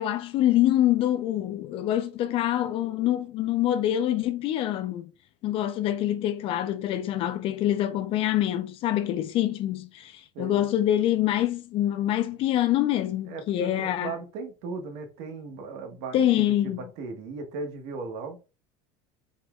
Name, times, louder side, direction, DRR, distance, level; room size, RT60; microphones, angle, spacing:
voice 1, 0.0-5.1 5.4-14.1 16.1-16.8, left 12 dB, 40° left, 0.4 m, -25 dB
voice 2, 10.3-10.7 13.3-16.2 16.6-18.4, right 4 dB, 60° right, 1.2 m, -37 dB
4.2 x 3.3 x 2.3 m
cardioid pair, 145°, 14 cm